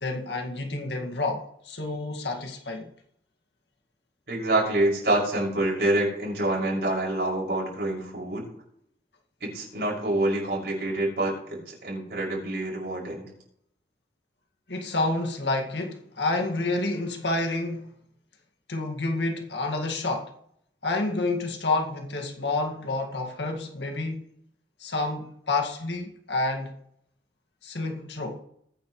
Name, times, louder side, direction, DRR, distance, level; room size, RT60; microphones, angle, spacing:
voice 1, 0.0-2.9 14.7-17.9 18.7-20.3 20.8-24.2 24.8-26.7 27.6-28.4, left 2 dB, 85° left, 2.1 m, -29 dB
voice 2, 4.3-8.5 9.4-13.3, right 1 dB, 65° right, 6.2 m, -26 dB
21.0 x 9.5 x 3.2 m
head